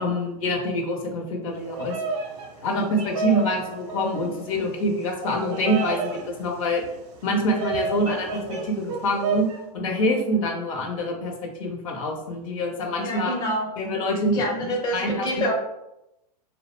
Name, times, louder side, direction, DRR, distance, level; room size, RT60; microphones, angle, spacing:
voice 1, 0.0-2.0 2.6-6.8 7.2-9.5 9.7-13.4 13.8-14.4 14.9-15.5, equal, 55° left, 2 dB, 0.6 m, -26 dB
Bird vocalization bird call bird song, 1.6-9.6, right 4 dB, 40° right, 0.6 m, -32 dB
voice 2, 13.0-13.7 14.3-15.5, equal, 20° left, -1 dB, 0.5 m, -27 dB
2.3 x 2.0 x 3.0 m, 0.88 s
hypercardioid pair, 125°, 20 cm